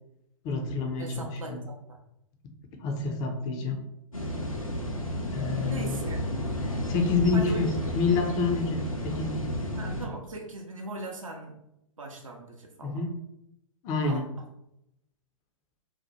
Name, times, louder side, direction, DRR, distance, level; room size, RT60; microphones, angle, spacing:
voice 1, 0.4-1.6 2.8-3.8 5.3-6.0 6.6-9.8 12.8-13.1 13.8-14.3, left 4 dB, 20° left, 4 dB, 0.4 m, -28 dB
voice 2, 1.0-2.0 5.5-6.2 7.3-7.7 9.8-11.6 12.0-13.0 14.0-14.2, right 3 dB, 75° right, 1 dB, 0.6 m, -39 dB
sound 1, 4.1-10.1, equal, 85° left, 0.7 m, -32 dB
2.7 x 2.1 x 4.1 m, 0.81 s
figure-of-eight pair, 110°, 17 cm